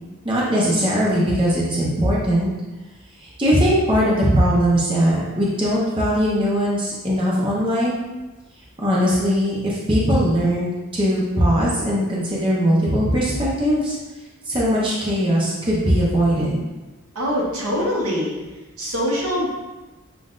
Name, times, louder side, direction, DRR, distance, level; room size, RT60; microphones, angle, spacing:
voice 1, 0.2-2.5 3.2-8.0 8.8-14.0 14.5-16.7, equal, 25° right, -6 dB, 0.7 m, -20 dB
voice 2, 17.1-18.4 18.8-19.5, equal, 80° right, -4 dB, 1.2 m, -23 dB
7.3 x 2.5 x 2.4 m, 1.1 s
head